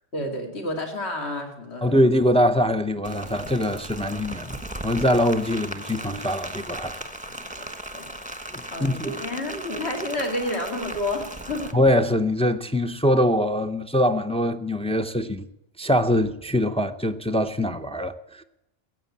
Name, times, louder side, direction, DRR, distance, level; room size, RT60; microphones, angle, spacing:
voice 1, 0.1-2.0 7.3-7.4 7.9-8.1 8.7-11.8, left 1 dB, 60° left, 2.7 m, -30 dB
voice 2, 1.8-7.0 8.5-9.2 11.7-15.5 15.8-18.4, left 1 dB, 10° left, 0.4 m, -23 dB
Rain, 3.0-11.7, right 1 dB, 5° right, 1.2 m, -36 dB
15.0 x 8.3 x 8.5 m
omnidirectional pair, 1.2 m